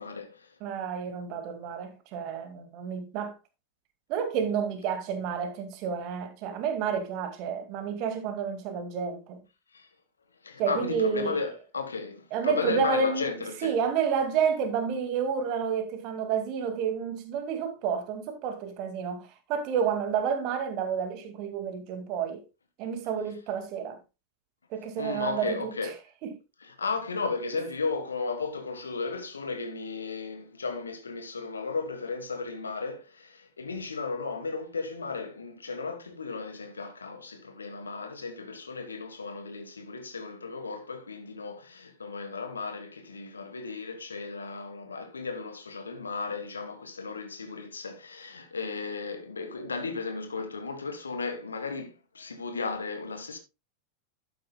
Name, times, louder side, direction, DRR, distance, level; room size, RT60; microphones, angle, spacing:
voice 1, 0.0-0.5 9.7-9.9 10.4-13.8 25.0-25.9 26.6-53.4, left 4 dB, 75° left, 1.4 m, -35 dB
voice 2, 0.6-3.3 4.1-9.4 10.6-11.4 12.3-13.2 13.6-22.4 22.8-24.0 24.7-25.7 26.2-26.3, right 7 dB, 40° right, 2.2 m, -30 dB
12.0 x 9.3 x 2.3 m
figure-of-eight pair, 90°, 0 cm